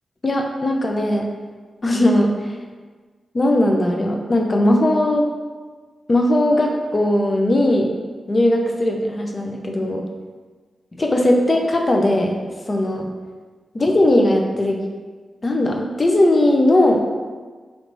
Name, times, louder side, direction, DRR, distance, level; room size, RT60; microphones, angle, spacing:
voice 1, 0.2-1.3 1.8-2.3 3.3-5.2 6.1-7.9 8.3-10.0 11.0-12.4 12.7-13.1 13.7-14.8 15.4-17.0, left 1 dB, 35° left, 2 dB, 0.6 m, -18 dB
3.2 x 3.2 x 4.0 m, 1.4 s
cardioid pair, 65°, 0 cm